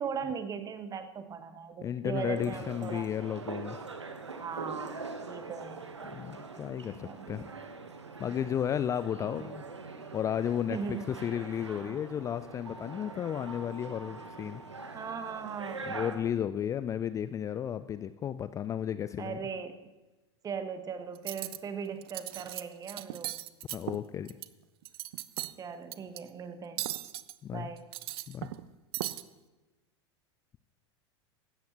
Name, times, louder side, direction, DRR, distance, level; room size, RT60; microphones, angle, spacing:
voice 1, 0.0-3.1 4.4-5.8 7.0-7.6 9.2-9.5 10.7-11.1 14.9-16.0 19.2-19.7 20.4-23.4 25.6-26.9 27.5-27.8, right 6 dB, 25° right, 9 dB, 1.1 m, -39 dB
voice 2, 1.8-3.8 6.1-7.5 8.2-14.6 15.8-19.4 23.7-24.4 27.4-27.7 28.3-28.5, left 9 dB, 20° left, 13 dB, 0.4 m, -33 dB
sound 1, 2.2-16.1, right 4 dB, 85° right, 1.2 m, -43 dB
Cutlery silverware, 21.2-21.6 22.0-22.6 22.9-24.5 24.8-25.5 25.9-26.2 26.8-27.3 27.8-28.7 28.9-29.2, right 15 dB, 60° right, 0.5 m, -37 dB
16.5 x 13.0 x 3.0 m, 1.1 s
figure-of-eight pair, 85°, 15 cm